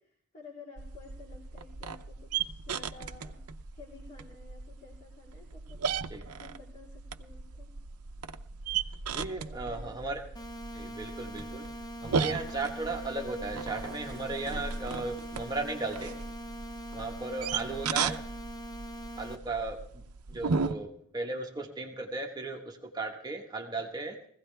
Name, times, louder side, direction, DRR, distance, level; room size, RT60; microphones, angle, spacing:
voice 1, 0.0-3.4 3.7-5.9 6.2-7.7 9.4-10.2 17.7-17.9, left 4 dB, 35° left, -5 dB, 3.6 m, -52 dB
sound 1, 0.8-20.7, right 5 dB, 90° right, 0.7 m, -37 dB
voice 2, 9.1-10.2 10.7-11.7 12.0-16.2 16.9-18.2 19.2-20.0 20.3-24.3, right 3 dB, 20° right, 1 dB, 1.2 m, -36 dB
sound 2, 10.3-19.3, right 1 dB, 15° left, 0.6 m, -42 dB
21.0 x 16.0 x 3.4 m, 0.66 s
head